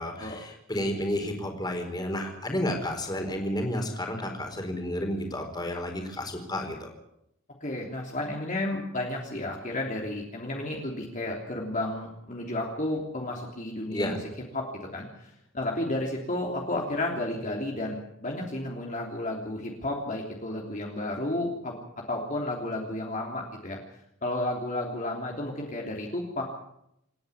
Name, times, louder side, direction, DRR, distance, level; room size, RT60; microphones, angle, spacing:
voice 1, 0.0-6.9 13.9-14.1, left 1 dB, 20° left, 3 dB, 4.4 m, -31 dB
voice 2, 7.6-21.7 22.1-23.8 24.2-26.4, left 1 dB, 40° left, 0 dB, 3.2 m, -32 dB
27.5 x 10.5 x 10.0 m, 0.79 s
head